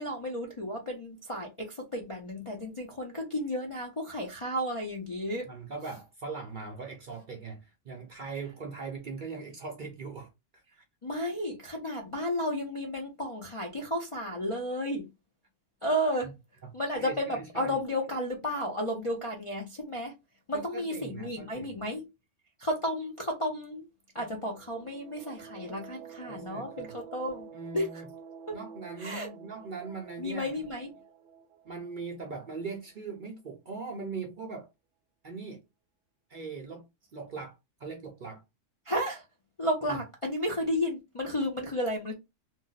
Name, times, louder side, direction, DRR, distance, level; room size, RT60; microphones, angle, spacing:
voice 1, 0.0-5.5 11.0-15.1 15.8-16.3 16.7-20.1 20.5-22.0 22.6-23.8 24.1-27.5 27.7-28.0 28.5-28.6 29.0-29.3 30.2-30.9 38.9-39.2 39.6-42.1, equal, 40° left, 0.4 m, -32 dB
voice 2, 5.5-10.8 16.2-16.3 17.0-17.8 20.5-21.8 24.2-24.3 26.3-26.9 27.5-28.1 28.5-30.7 31.6-34.7 35.2-35.6 36.3-36.9 37.1-38.4 39.9-40.0, right 4 dB, 55° right, 0.6 m, -40 dB
sound 1, 24.4-33.0, right 7 dB, 70° right, 0.9 m, -49 dB
2.6 x 2.1 x 3.9 m
omnidirectional pair, 1.3 m